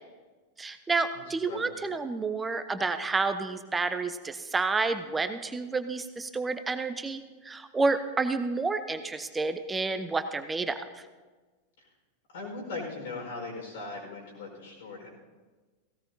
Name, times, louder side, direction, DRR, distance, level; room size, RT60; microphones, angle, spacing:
voice 1, 0.6-10.8, right 3 dB, 10° right, 9 dB, 0.8 m, -30 dB
voice 2, 1.1-1.7 11.8-11.9 12.3-15.1, left 3 dB, 60° left, -2 dB, 4.7 m, -39 dB
17.5 x 17.0 x 2.8 m, 1.3 s
figure-of-eight pair, 90°, 0 cm